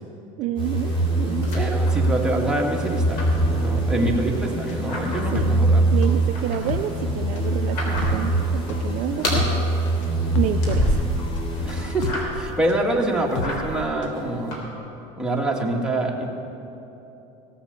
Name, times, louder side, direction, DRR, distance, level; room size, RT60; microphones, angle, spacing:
voice 1, 0.4-1.6 3.9-4.2 5.3-5.6 5.9-9.5 10.4-11.0, right 12 dB, 50° right, 8 dB, 0.5 m, -29 dB
sound 1, 0.6-12.3, right 2 dB, 35° left, 2.9 m, -24 dB
sound 2, 0.9-2.4 2.7-4.1 4.5-5.5 5.9-8.4 8.7-9.5 9.8-11.3 11.6-12.6 12.9-14.6, left 1 dB, 65° left, 3.3 m, -30 dB
voice 2, 1.5-5.9 11.6-14.7 15.2-16.3, right 1 dB, 5° right, -2 dB, 1.8 m, -25 dB
sound 3, 4.0-14.2 14.5-14.6, left 6 dB, 90° left, 0.7 m, -33 dB
16.5 x 7.1 x 6.8 m, 3.0 s
supercardioid pair, 105°, 16 cm